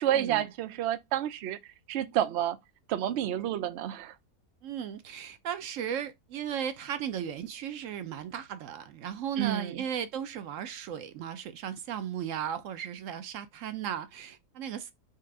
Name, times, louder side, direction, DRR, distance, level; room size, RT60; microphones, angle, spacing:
voice 1, 0.0-1.6 1.9-2.6 2.9-4.1 9.4-9.8, right 11 dB, 80° right, 0.5 m, -29 dB
voice 2, 4.6-14.9, right 9 dB, 65° right, 0.9 m, -36 dB
4.4 x 2.5 x 4.8 m
omnidirectional pair, 1.7 m